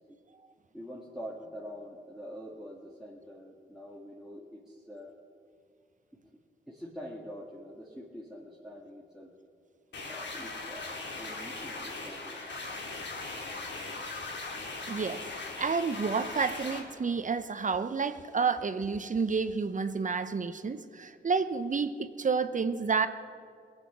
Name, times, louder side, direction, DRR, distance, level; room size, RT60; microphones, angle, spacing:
voice 1, 0.7-5.1 6.1-6.3 6.7-9.3 10.0-12.6, equal, ahead, -4 dB, 1.9 m, -45 dB
sound 1, 9.9-16.8, left 3 dB, 65° left, 2.3 m, -39 dB
voice 2, 14.9-23.1, right 5 dB, 40° right, 11 dB, 0.8 m, -30 dB
18.5 x 8.1 x 7.2 m, 2.2 s
cardioid pair, 55°, 20 cm